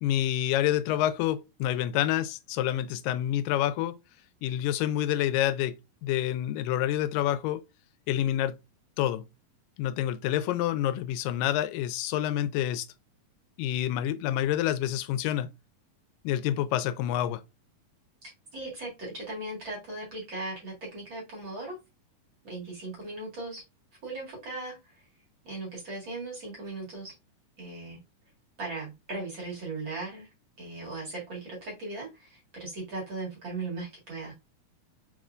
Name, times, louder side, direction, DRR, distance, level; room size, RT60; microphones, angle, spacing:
voice 1, 0.0-4.0 4.4-5.8 6.0-7.6 8.1-8.6 9.0-9.2 9.8-12.9 13.6-15.5 16.2-17.4, left 12 dB, 85° left, 2.2 m, -28 dB
voice 2, 18.2-21.8 22.4-23.6 24.0-25.0 25.4-27.1 27.6-28.0 28.6-30.3 30.6-34.3, right 2 dB, 40° right, 2.1 m, -38 dB
4.8 x 4.3 x 2.4 m
omnidirectional pair, 3.8 m